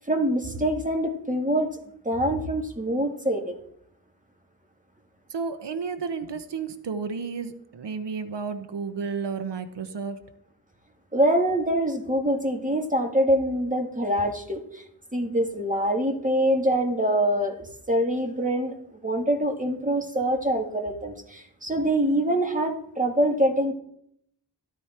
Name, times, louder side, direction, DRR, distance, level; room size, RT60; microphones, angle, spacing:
voice 1, 0.1-1.7 2.0-3.6 11.1-14.8 15.1-18.8 19.0-23.7, right 1 dB, 20° right, 3 dB, 2.1 m, -24 dB
voice 2, 5.3-10.2, right 5 dB, 85° right, 10 dB, 1.0 m, -32 dB
13.5 x 11.5 x 4.4 m, 0.71 s
cardioid pair, 50°, 41 cm